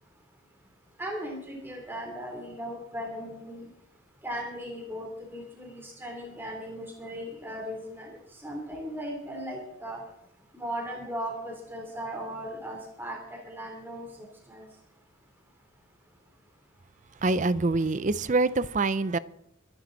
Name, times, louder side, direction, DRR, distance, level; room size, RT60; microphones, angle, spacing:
voice 1, 1.0-3.7 4.2-10.0 10.5-14.1 14.5-14.7, equal, 10° right, 3.3 m, -37 dB
voice 2, 17.2-19.2, right 3 dB, 35° right, 0.6 m, -25 dB
24.5 x 11.0 x 4.1 m
head